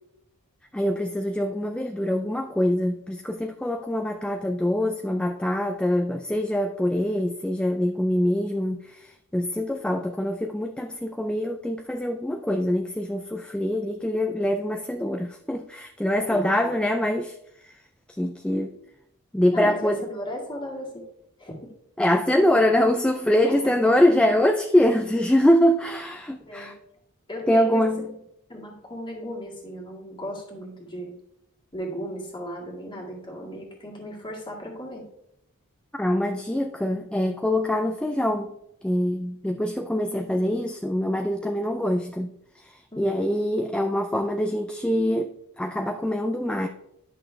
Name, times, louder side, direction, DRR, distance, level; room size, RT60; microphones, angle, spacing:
voice 1, 0.7-17.4 17.6-17.8 18.2-18.8 19.3-20.1 22.0-26.8 27.5-28.2 36.0-38.5 38.8-46.7, left 1 dB, 5° left, 5 dB, 0.3 m, -24 dB
voice 2, 16.1-16.7 19.5-21.1 21.4-21.7 23.4-23.9 26.5-26.7 27.3-27.8 28.5-31.1 31.7-35.0 42.9-43.2, equal, 20° left, -2 dB, 2.0 m, -36 dB
10.5 x 6.0 x 3.4 m, 0.79 s
head